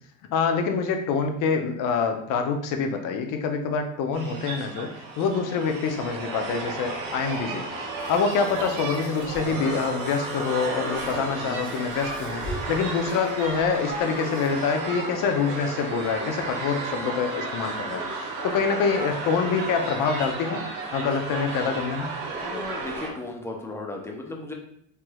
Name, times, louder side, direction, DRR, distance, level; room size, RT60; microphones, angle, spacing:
voice 1, 0.3-7.6 8.1-20.6 20.9-22.1, left 5 dB, 75° left, 5 dB, 0.6 m, -26 dB
sound 1, 4.1-23.1, right 3 dB, 75° right, 0.9 m, -33 dB
sound 2, 8.0-14.6, equal, 35° left, 1.0 m, -40 dB
voice 2, 22.4-24.5, left 2 dB, 10° left, 1 dB, 0.5 m, -35 dB
3.3 x 3.0 x 2.2 m, 0.70 s
cardioid pair, 105°, 33 cm